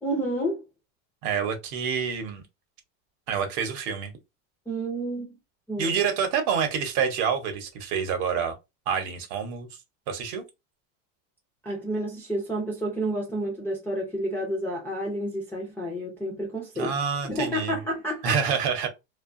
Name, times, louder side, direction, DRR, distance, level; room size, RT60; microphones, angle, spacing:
voice 1, 0.0-0.7 4.7-5.4 5.7-6.0 11.6-17.0 17.2-18.4, right 1 dB, 5° left, 0.4 m, -30 dB
voice 2, 1.2-2.4 3.3-4.1 5.8-8.5 8.9-9.7 10.1-10.4 16.8-17.7 18.2-18.9, right 7 dB, 50° right, 0.9 m, -27 dB
2.7 x 2.3 x 2.4 m
supercardioid pair, 150°, 39 cm